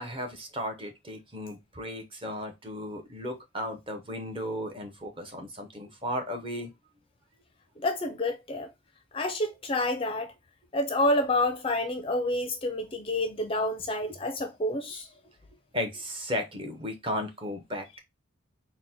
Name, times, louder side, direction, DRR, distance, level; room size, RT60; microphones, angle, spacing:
voice 1, 0.0-6.7 15.7-18.0, equal, 25° right, 0.7 m, -35 dB
voice 2, 7.8-8.7 9.1-10.3 10.7-15.1, left 1 dB, 25° left, 0.4 m, -28 dB
4.0 x 2.1 x 4.1 m
head